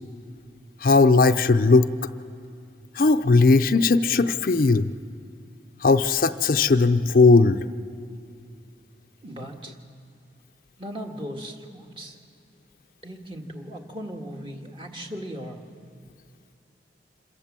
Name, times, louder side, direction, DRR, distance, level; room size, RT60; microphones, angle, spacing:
voice 1, 0.8-1.9 2.9-4.9 5.8-7.6, left 3 dB, 50° left, 9 dB, 0.5 m, -18 dB
voice 2, 9.2-9.8 10.8-12.2 13.0-15.6, equal, 30° right, 2 dB, 1.7 m, -37 dB
27.0 x 15.5 x 7.5 m, 2.3 s
head